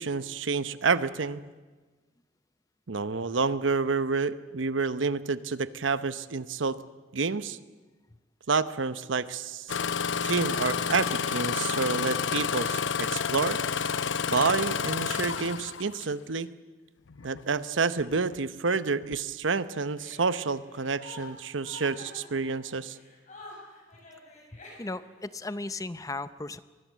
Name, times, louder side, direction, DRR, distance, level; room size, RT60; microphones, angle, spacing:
voice 1, 0.0-1.4 2.9-6.8 7.1-7.6 8.5-9.8 10.2-13.6 14.3-16.5 17.2-23.0, right 4 dB, 80° right, 14 dB, 0.9 m, -29 dB
Engine starting, 9.7-16.1 17.1-17.4 18.0-18.4 19.0-19.2, left 6 dB, 75° left, 0.7 m, -30 dB
Chuckle chortle, 20.0-25.2, left 2 dB, 40° left, 7.3 m, -48 dB
voice 2, 24.8-26.6, left 2 dB, 20° left, 14 dB, 0.6 m, -36 dB
23.5 x 20.5 x 7.5 m, 1.3 s
head